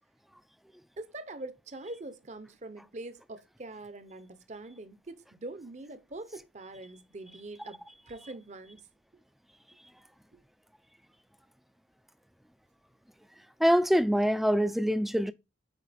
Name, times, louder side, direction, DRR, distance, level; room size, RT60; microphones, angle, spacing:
voice 1, 1.0-7.8 8.1-8.8 10.3-10.4, right 2 dB, 40° right, 0.7 m, -43 dB
voice 2, 13.6-15.3, equal, ahead, 0.3 m, -24 dB
9.0 x 4.4 x 3.4 m
head